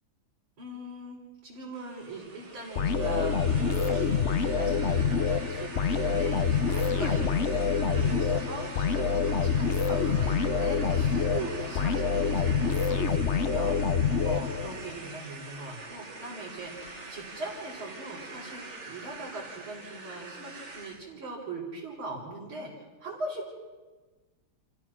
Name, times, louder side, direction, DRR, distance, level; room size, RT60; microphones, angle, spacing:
voice 1, 0.6-4.2 4.5-7.3 7.7-22.7 23.0-23.5, right 2 dB, 75° right, -6 dB, 5.0 m, -40 dB
sound 1, 1.7-21.0, right 3 dB, 35° right, 2.3 m, -43 dB
sound 2, 2.8-14.9, left 6 dB, 80° left, 0.6 m, -26 dB
29.5 x 15.5 x 6.1 m, 1.3 s
omnidirectional pair, 2.3 m